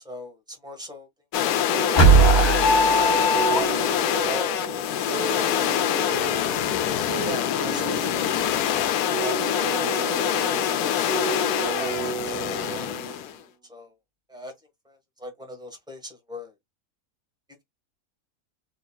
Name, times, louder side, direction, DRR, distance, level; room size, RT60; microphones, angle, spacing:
voice 1, 0.0-1.1 1.4-1.9 2.7-3.8 4.1-4.5 5.3-5.8 7.2-8.5 9.2-9.4 10.8-11.2 11.8-12.3 12.7-12.9 13.7-13.9 14.3-14.5 14.8-16.5, equal, 5° right, 1.1 m, -38 dB
sound 1, 1.3-13.3, left 11 dB, 80° left, 1.1 m, -25 dB
sound 2, 1.7-13.4, right 7 dB, 40° right, 1.4 m, -33 dB
sound 3, 2.0-4.1, right 2 dB, 25° left, 0.6 m, -18 dB
4.0 x 3.1 x 2.2 m
omnidirectional pair, 1.6 m